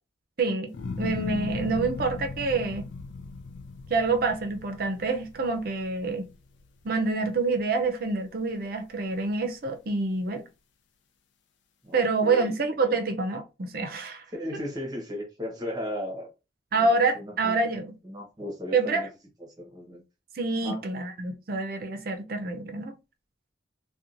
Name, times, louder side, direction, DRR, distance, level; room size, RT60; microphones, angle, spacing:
voice 1, 0.4-0.7 1.0-2.9 3.9-6.3 6.8-10.5 11.9-14.2 16.7-17.9 18.7-19.1 20.4-22.9, right 3 dB, 55° right, 0.5 m, -27 dB
sound 1, 0.7-7.1 7.5-8.1, left 4 dB, 80° left, 0.4 m, -37 dB
voice 2, 11.8-12.5 14.3-16.3 16.8-17.6 18.0-19.1 19.4-20.0 20.6-20.8, left 1 dB, 20° right, 0.8 m, -36 dB
2.8 x 2.2 x 2.5 m
head